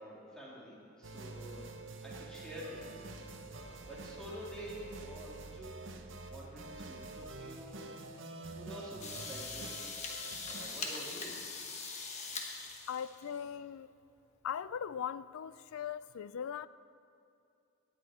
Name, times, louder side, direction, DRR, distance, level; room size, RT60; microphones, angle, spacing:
voice 1, 0.0-1.6 2.0-5.9 6.3-7.9 8.6-9.7 10.0-11.4, equal, 5° left, 2.6 m, -48 dB
sound 1, 1.0-10.7, right 3 dB, 60° right, 0.8 m, -47 dB
sound 2, 9.0-13.4, left 4 dB, 30° left, 1.1 m, -42 dB
voice 2, 12.9-13.9 14.4-16.7, left 8 dB, 80° left, 0.4 m, -39 dB
17.5 x 8.5 x 4.2 m
head